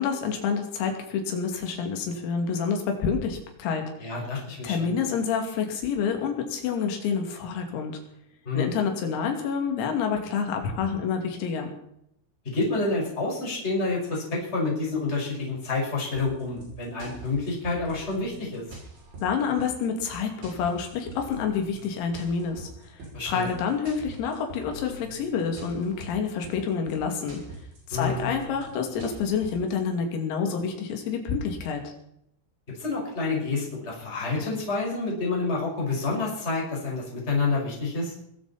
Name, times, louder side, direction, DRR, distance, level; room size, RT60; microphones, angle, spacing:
voice 1, 0.0-3.9 4.6-7.9 8.5-11.7 19.2-23.0 23.3-27.4 27.9-31.9, left 6 dB, 90° left, 4 dB, 5.4 m, -28 dB
voice 2, 4.0-4.9 8.5-8.6 12.4-18.7 23.1-23.5 27.9-28.3 32.8-38.2, left 3 dB, 10° left, -2 dB, 5.3 m, -28 dB
sound 1, 16.1-29.7, right 2 dB, 60° right, 9.0 m, -44 dB
21.5 x 14.5 x 4.4 m, 0.75 s
omnidirectional pair, 6.0 m